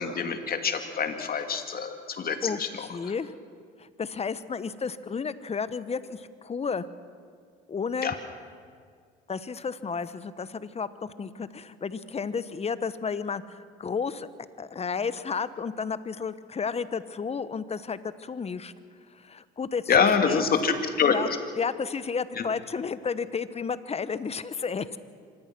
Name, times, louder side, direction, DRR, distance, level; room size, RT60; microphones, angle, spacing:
voice 1, 0.0-2.9 8.0-8.2 19.9-21.1, left 6 dB, 50° left, 6 dB, 2.6 m, -25 dB
voice 2, 2.4-3.3 3.8-6.9 7.7-8.1 9.3-14.3 14.6-18.7 19.1-20.4 21.1-25.0, left 5 dB, 30° left, 15 dB, 1.1 m, -32 dB
25.0 x 19.0 x 6.1 m, 2.1 s
supercardioid pair, 70°, 20 cm